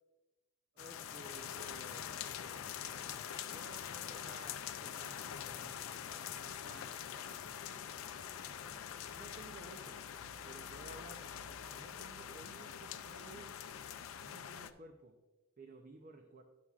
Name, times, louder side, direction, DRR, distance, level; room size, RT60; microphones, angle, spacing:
voice 1, 0.7-7.6 9.1-10.0 10.4-11.3 11.7-13.6 14.2-15.1 15.6-16.4, right 2 dB, 40° right, 4 dB, 0.5 m, -56 dB
sound 1, 0.8-14.7, left 9 dB, 80° left, 0.4 m, -45 dB
11.0 x 7.0 x 2.4 m, 1.2 s
head